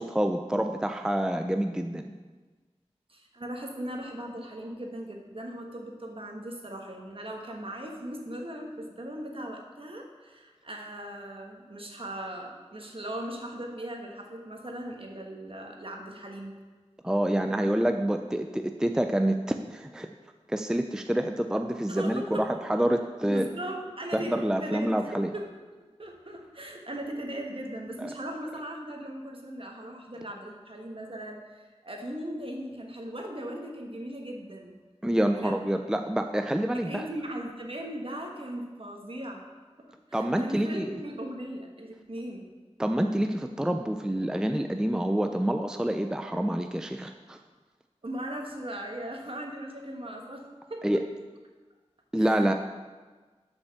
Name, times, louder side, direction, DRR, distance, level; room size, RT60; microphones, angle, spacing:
voice 1, 0.0-2.1 17.0-20.1 20.5-22.4 22.7-23.5 24.1-25.3 28.0-28.1 35.0-37.0 40.1-40.9 42.8-47.4 50.8-51.0 52.1-52.5, right 1 dB, 5° right, 6 dB, 0.4 m, -27 dB
voice 2, 3.1-16.5 21.9-22.5 23.3-24.3 24.6-25.5 25.7-34.8 35.3-35.7 36.7-39.4 40.1-42.5 48.0-50.8 52.2-52.4, right 1 dB, 50° right, 1 dB, 1.4 m, -38 dB
6.9 x 5.3 x 6.4 m, 1.3 s
wide cardioid pair, 45°, 12 cm